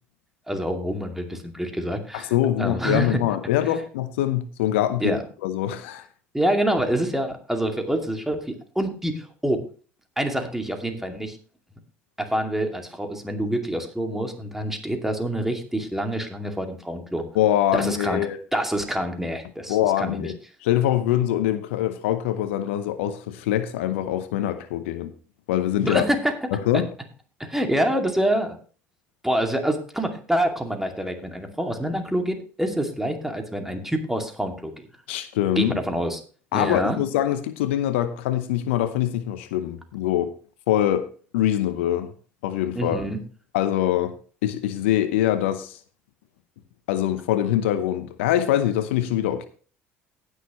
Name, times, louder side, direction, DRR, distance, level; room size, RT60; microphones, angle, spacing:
voice 1, 0.5-2.3 2.6-3.2 5.0-5.2 6.3-9.6 10.2-11.4 12.2-17.2 17.7-18.2 18.5-20.3 25.8-26.3 26.7-26.8 27.4-28.6 29.2-34.9 35.6-36.2 36.5-37.0 42.7-43.2, right 1 dB, 5° right, 2.4 m, -26 dB
voice 2, 2.1-6.1 17.3-18.4 19.7-20.4 20.6-25.1 25.5-26.1 26.5-26.9 35.1-35.8 36.5-40.3 40.7-41.1 41.3-42.1 42.4-43.1 43.5-44.1 44.4-45.8 46.9-49.5, left 12 dB, 75° left, 0.8 m, -24 dB
18.5 x 6.6 x 3.1 m
hypercardioid pair, 65°, 7 cm